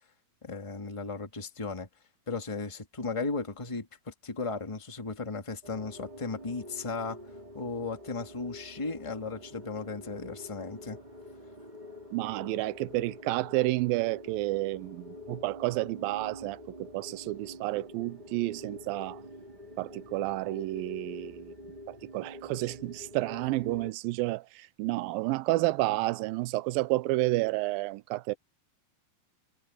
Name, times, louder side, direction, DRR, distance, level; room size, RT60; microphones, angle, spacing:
voice 1, 0.4-1.9 2.3-7.2 7.5-11.0, left 4 dB, 15° left, 1.3 m, -36 dB
sound 1, 5.6-23.9, left 1 dB, 15° right, 2.5 m, -47 dB
voice 2, 12.1-19.2 19.8-21.5 21.9-28.3, right 19 dB, 80° right, 2.3 m, -30 dB
omnidirectional pair, 4.3 m